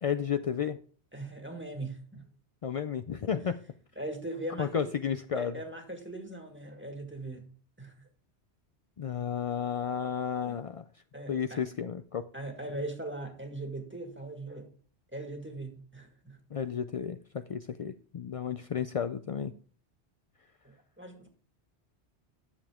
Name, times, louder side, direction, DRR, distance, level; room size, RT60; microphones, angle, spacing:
voice 1, 0.0-0.8 2.6-3.6 4.6-5.6 9.0-10.8 11.3-12.3 16.5-19.5, left 8 dB, 65° left, 0.3 m, -32 dB
voice 2, 1.1-2.3 4.0-4.9 5.3-7.5 7.8-8.0 10.4-10.6 11.1-11.6 12.3-14.7 15.1-16.4 21.0-21.3, right 2 dB, 10° right, 1.7 m, -40 dB
10.5 x 7.0 x 3.6 m
omnidirectional pair, 1.1 m